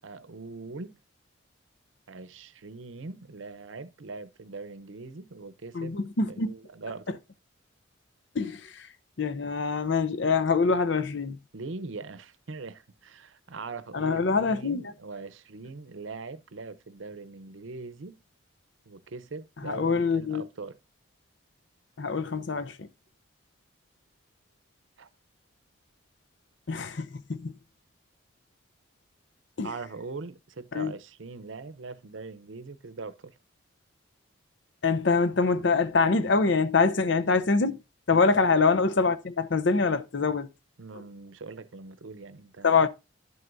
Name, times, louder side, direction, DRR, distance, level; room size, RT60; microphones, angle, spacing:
voice 1, 0.0-1.0 2.1-6.0 6.3-7.2 11.5-18.2 18.9-20.8 25.0-25.1 29.6-33.3 38.1-38.5 40.8-42.9, right 3 dB, 70° right, 0.7 m, -41 dB
voice 2, 5.7-6.5 8.3-8.9 9.2-11.4 13.9-14.9 19.6-20.4 22.0-22.9 26.7-27.6 29.6-29.7 30.7-30.9 34.8-37.8 38.1-40.5 42.6-42.9, left 4 dB, 60° left, 0.6 m, -25 dB
11.5 x 7.8 x 2.6 m
head